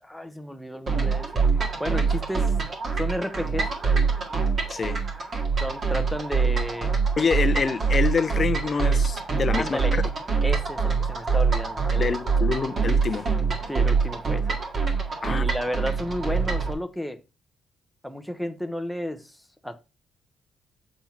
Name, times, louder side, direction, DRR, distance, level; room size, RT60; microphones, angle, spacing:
voice 1, 0.0-2.5 3.0-3.7 5.6-6.9 9.5-9.9 10.4-12.2 13.7-14.5 15.3-17.2 18.0-19.8, equal, ahead, 0.8 m, -32 dB
sound 1, 0.9-16.7, right 5 dB, 45° right, 1.8 m, -24 dB
voice 2, 4.7-5.0 7.2-10.0 12.0-13.3 15.2-15.4, left 5 dB, 40° left, 0.6 m, -26 dB
7.3 x 3.7 x 4.3 m
cardioid pair, 90°, 0 cm